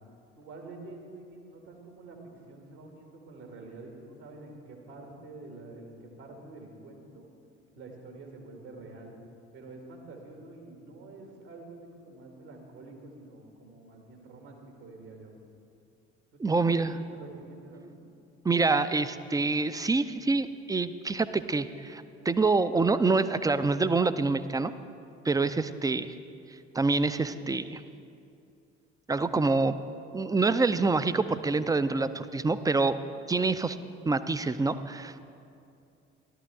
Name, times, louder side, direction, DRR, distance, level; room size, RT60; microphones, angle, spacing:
voice 1, 0.4-2.2 2.5-7.3 7.8-9.1 9.5-15.3 16.3-18.0, right 2 dB, 70° right, 2 dB, 2.0 m, -47 dB
voice 2, 16.4-16.9 18.4-24.7 25.2-26.1 26.7-27.8 29.1-29.8 30.1-33.0 33.3-33.8 34.1-35.2, right 3 dB, 10° right, 13 dB, 0.3 m, -26 dB
12.5 x 12.0 x 3.6 m, 2.5 s
figure-of-eight pair, 50°, 35 cm